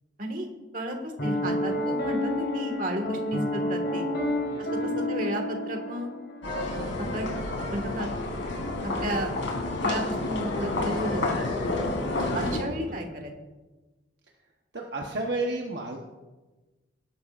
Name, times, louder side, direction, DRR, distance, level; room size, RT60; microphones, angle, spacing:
voice 1, 0.7-4.1 4.6-6.1 7.0-7.3 7.7-8.1 8.8-9.3 9.8-11.5 12.3-13.3, right 1 dB, 45° right, 3 dB, 1.8 m, -33 dB
Piano, 1.2-6.5, left 1 dB, 65° left, 3.9 m, -29 dB
sound 1, 6.4-12.6, left 2 dB, 85° left, 3.2 m, -29 dB
voice 2, 12.1-12.6 12.9-13.0 14.7-16.0, right 2 dB, 60° right, 0 dB, 1.1 m, -33 dB
19.5 x 11.5 x 2.6 m, 1.2 s
head